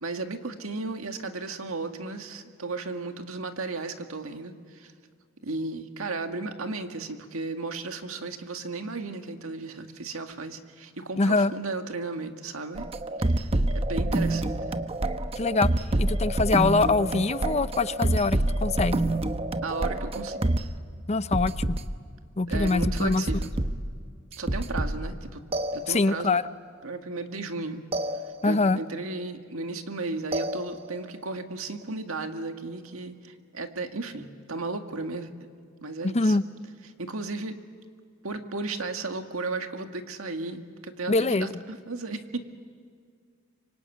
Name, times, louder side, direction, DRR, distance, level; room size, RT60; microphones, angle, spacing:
voice 1, 0.0-4.9 5.4-12.9 13.3-13.4 13.7-14.6 19.6-20.4 22.5-23.5 24.4-25.4 25.7-26.4 26.8-27.8 28.4-35.3 35.8-36.4 37.0-37.6 38.2-42.4, right 3 dB, 80° right, 6 dB, 1.9 m, -34 dB
voice 2, 11.2-11.5 15.3-15.7 16.0-19.0 21.1-21.8 22.4-23.2 25.9-26.4 28.4-28.8 36.0-36.4 41.1-41.6, left 3 dB, 30° left, 14 dB, 0.6 m, -24 dB
sound 1, 12.8-20.7 21.3-21.8 22.5-23.9 24.3-25.1 25.5-26.3 27.9-28.7 30.3-31.1, right 1 dB, 30° right, 0.9 m, -27 dB
25.5 x 25.0 x 9.1 m, 2.2 s
head